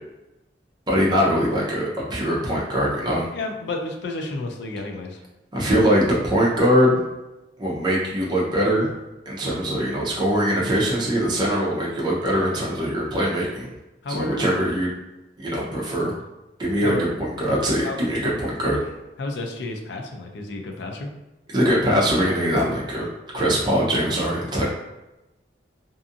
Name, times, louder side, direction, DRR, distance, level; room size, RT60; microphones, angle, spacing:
voice 1, 0.9-3.3 5.5-7.0 7.6-8.9 9.3-13.7 14.1-14.9 15.4-16.1 16.6-18.9 21.5-23.1 23.3-24.7, equal, 25° right, -5 dB, 0.6 m, -22 dB
voice 2, 3.3-5.2 14.0-14.5 16.8-17.0 17.8-18.0 18.2-18.3 19.2-21.1, left 2 dB, 75° left, 3 dB, 0.4 m, -31 dB
2.6 x 2.4 x 2.5 m, 1.0 s
head